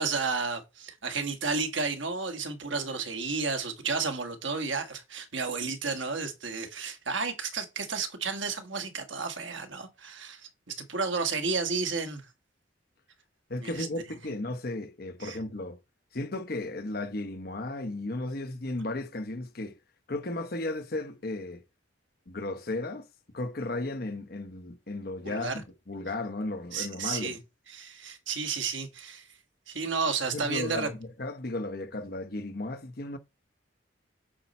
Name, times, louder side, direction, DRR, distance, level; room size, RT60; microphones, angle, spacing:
voice 1, 0.0-12.3 13.6-13.9 15.2-15.4 25.2-25.5 26.7-27.4 27.7-29.3 29.7-30.9, right 4 dB, 70° right, 1.6 m, -32 dB
voice 2, 13.5-15.8 16.1-19.8 20.1-21.6 22.3-23.1 23.3-27.4 30.3-33.2, left 2 dB, 50° left, 0.9 m, -35 dB
8.6 x 5.3 x 4.2 m
head